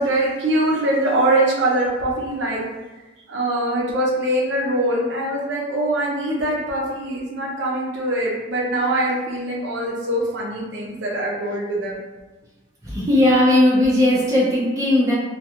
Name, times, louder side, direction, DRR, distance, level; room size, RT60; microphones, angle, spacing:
voice 1, 0.0-2.6 3.3-12.0, right 1 dB, 75° right, -4 dB, 0.6 m, -23 dB
voice 2, 12.8-15.1, left 1 dB, 20° right, -8 dB, 0.6 m, -17 dB
2.3 x 2.3 x 2.8 m, 1.2 s
head